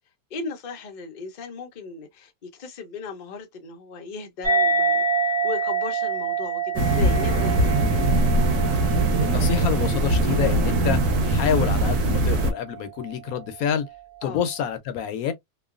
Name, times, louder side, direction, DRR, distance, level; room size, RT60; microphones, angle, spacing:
voice 1, 0.3-7.7 14.2-14.4, left 4 dB, 50° left, 0.6 m, -37 dB
sound 1, 4.4-11.3, right 4 dB, 45° right, 1.2 m, -26 dB
sound 2, 6.8-12.5, right 2 dB, 80° right, 1.2 m, -21 dB
voice 2, 9.2-13.9 14.2-15.3, left 8 dB, 75° left, 1.0 m, -27 dB
3.0 x 2.2 x 2.4 m
omnidirectional pair, 1.6 m